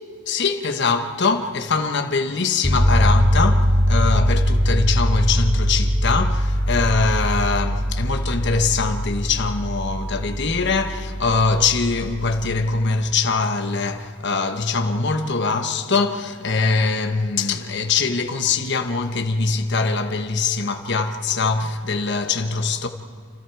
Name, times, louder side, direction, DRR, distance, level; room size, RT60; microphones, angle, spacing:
voice 1, 0.3-22.9, left 4 dB, 55° left, 1.2 m, -22 dB
sound 1, 2.6-12.8, equal, 5° right, 2.8 m, -21 dB
29.5 x 27.5 x 4.7 m
head